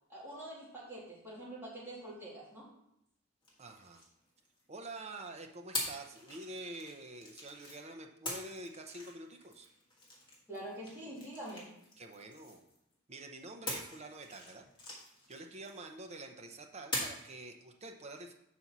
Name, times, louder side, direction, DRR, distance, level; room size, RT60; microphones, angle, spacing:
voice 1, 0.1-2.7 10.5-11.7, right 1 dB, 10° right, -7 dB, 2.5 m, -45 dB
sound 1, 3.4-4.9 5.7-7.8 8.3-12.9 13.7-16.2 16.9-17.4, left 1 dB, 20° left, 1.5 m, -44 dB
voice 2, 3.6-4.0 4.7-9.7 12.0-12.6 13.1-14.7 15.3-18.3, right 2 dB, 30° right, 3 dB, 0.7 m, -47 dB
5.4 x 4.3 x 6.0 m, 0.76 s
head